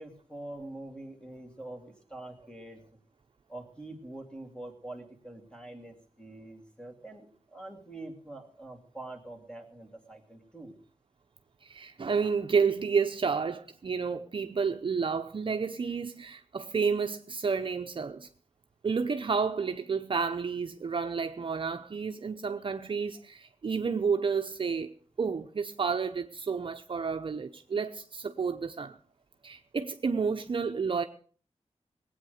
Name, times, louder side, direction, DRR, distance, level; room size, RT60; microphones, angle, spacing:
voice 1, 0.0-2.8 3.5-10.7, right 2 dB, 10° left, 2.7 m, -45 dB
voice 2, 11.6-18.3 18.8-29.0 29.4-31.0, right 5 dB, 45° right, 0.8 m, -30 dB
19.0 x 8.7 x 6.5 m
wide cardioid pair, 145°, 12 cm